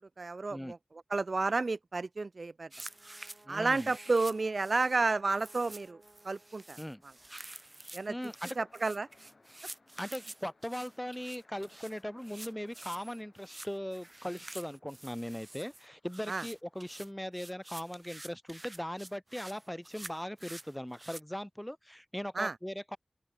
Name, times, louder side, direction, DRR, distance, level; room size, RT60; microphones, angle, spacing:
voice 1, 0.2-0.8 1.1-2.7 3.5-6.0 6.3-6.8 7.9-8.1 8.6-9.1 16.3-16.4 22.4-22.5, right 3 dB, 65° right, 0.3 m, -31 dB
sound 1, 2.7-21.2, right 1 dB, 30° right, 0.7 m, -49 dB
Brass instrument, 2.7-7.1, right 2 dB, 45° right, 3.9 m, -61 dB
voice 2, 3.4-3.9 6.8-7.0 8.1-8.6 10.0-23.0, equal, 5° left, 1.7 m, -39 dB
sound 2, 5.6-17.0, left 3 dB, 60° left, 4.4 m, -66 dB
open air
wide cardioid pair, 65°, 0 cm